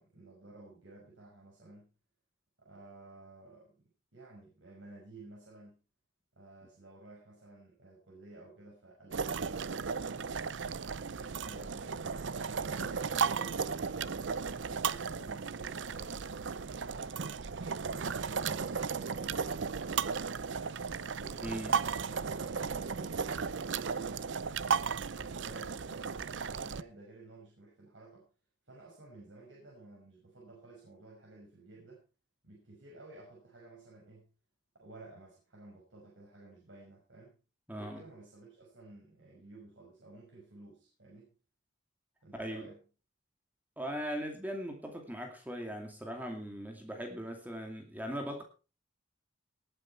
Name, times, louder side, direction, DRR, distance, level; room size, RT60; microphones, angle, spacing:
voice 1, 0.0-1.9 2.6-3.8 4.1-5.8 6.3-10.9 11.4-13.8 14.1-14.3 14.6-18.0 18.5-20.7 21.2-24.3 24.8-28.3 28.6-32.0 32.4-34.3 34.7-37.4 37.7-41.3 42.2-42.8, right 2 dB, 90° right, -3 dB, 6.0 m, -54 dB
sound 1, 9.1-26.8, right 6 dB, 75° right, 0.6 m, -35 dB
voice 2, 21.4-21.8 37.7-38.0 42.4-42.7 43.8-48.4, equal, 10° right, 3 dB, 2.4 m, -39 dB
19.5 x 8.8 x 4.5 m, 0.34 s
head